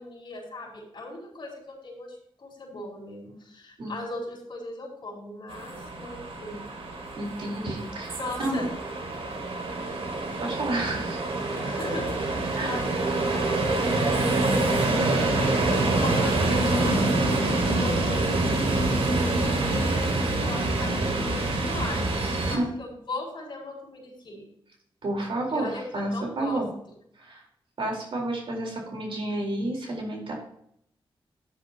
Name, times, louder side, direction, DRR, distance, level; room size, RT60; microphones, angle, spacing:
voice 1, 0.0-6.6 8.2-8.7 11.6-17.2 17.7-24.4 25.5-26.6, left 2 dB, 55° left, -1 dB, 5.0 m, -38 dB
sound 1, 5.5-22.6, right 2 dB, 85° right, 2.2 m, -26 dB
voice 2, 7.2-8.7 10.4-11.2 12.5-12.8 22.5-22.6 25.0-25.7 25.9-26.7 27.2-27.4 27.8-30.3, right 1 dB, 70° right, -1 dB, 4.0 m, -30 dB
13.5 x 10.0 x 2.9 m, 0.71 s
wide cardioid pair, 105°, 9 cm